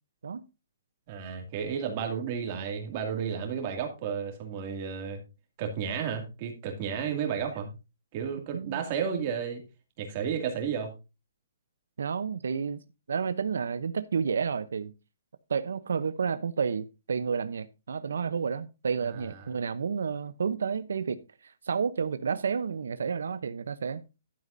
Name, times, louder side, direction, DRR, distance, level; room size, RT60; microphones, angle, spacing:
voice 1, 1.1-5.2 5.6-7.7 8.1-9.6 10.0-10.9, right 7 dB, 25° right, 2.3 m, -32 dB
voice 2, 8.5-8.8 12.0-12.8 13.1-14.9 15.5-24.0, right 6 dB, 80° right, 0.7 m, -31 dB
11.5 x 9.3 x 2.6 m
hypercardioid pair, 175°, 0 cm